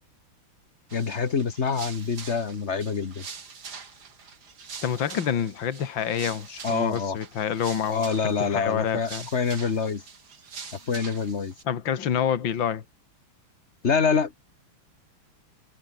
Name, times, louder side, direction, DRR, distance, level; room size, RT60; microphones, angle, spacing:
voice 1, 0.9-3.2 6.6-7.2 7.9-10.0 10.9-11.5 13.8-14.4, left 5 dB, 35° left, 1.5 m, -26 dB
sound 1, 0.9-11.6, right 6 dB, 50° right, 2.6 m, -44 dB
voice 2, 4.8-9.3 11.6-12.8, left 8 dB, 60° left, 2.5 m, -27 dB
omnidirectional pair, 2.4 m